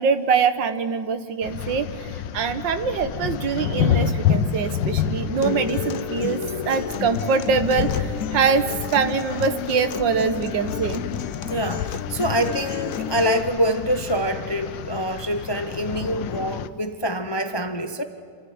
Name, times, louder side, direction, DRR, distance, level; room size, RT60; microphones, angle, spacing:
voice 1, 0.0-1.9 2.3-8.7 8.9-11.0, right 5 dB, 85° right, 10 dB, 1.8 m, -23 dB
sound 1, 1.4-16.7, left 9 dB, 85° left, 1.4 m, -29 dB
Acoustic guitar, 5.4-13.4, left 8 dB, 60° left, 1.1 m, -32 dB
voice 2, 11.5-18.0, right 1 dB, 25° left, 8 dB, 0.5 m, -25 dB
27.0 x 15.0 x 9.4 m, 2.4 s
omnidirectional pair, 1.9 m